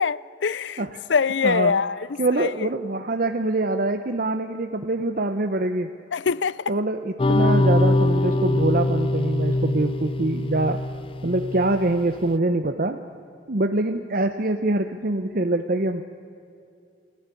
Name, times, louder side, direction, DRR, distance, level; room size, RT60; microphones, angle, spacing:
voice 1, 0.0-2.5 6.1-6.6, left 5 dB, 80° left, 0.6 m, -24 dB
voice 2, 1.4-1.8 2.2-5.9 6.7-10.8 11.2-13.0 13.5-16.0, right 2 dB, 50° right, 0.9 m, -24 dB
sound 1, 7.2-12.0, left 2 dB, 30° left, 0.5 m, -23 dB
29.0 x 15.0 x 8.5 m
head